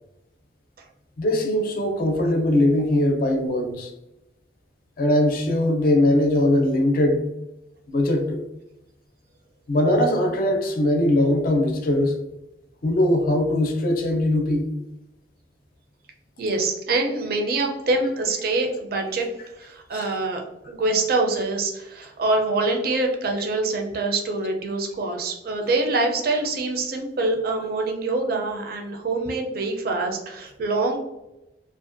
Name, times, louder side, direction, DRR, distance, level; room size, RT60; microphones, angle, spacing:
voice 1, 1.2-3.9 5.0-7.2 7.9-8.4 9.7-12.2 12.8-14.7 19.9-20.0, left 1 dB, 55° left, 4 dB, 0.4 m, -21 dB
voice 2, 16.4-19.3 19.6-31.0, right 2 dB, 55° right, 3 dB, 0.5 m, -25 dB
2.5 x 2.1 x 2.5 m, 0.93 s
head